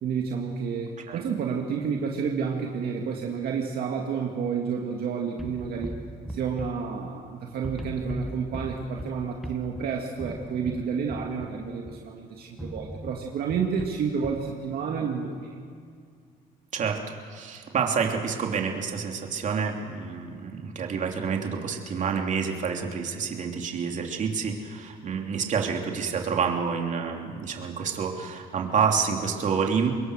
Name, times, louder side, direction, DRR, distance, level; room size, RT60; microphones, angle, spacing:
voice 1, 0.0-5.9 6.3-15.6, right 6 dB, 65° right, 0 dB, 2.2 m, -30 dB
sound 1, 5.4-7.3 7.6-12.1 12.6-14.5, right 1 dB, ahead, 1.1 m, -39 dB
voice 2, 16.7-29.9, right 6 dB, 45° right, 1 dB, 3.1 m, -28 dB
25.5 x 21.5 x 6.4 m, 2.2 s
cardioid pair, 110°, 17 cm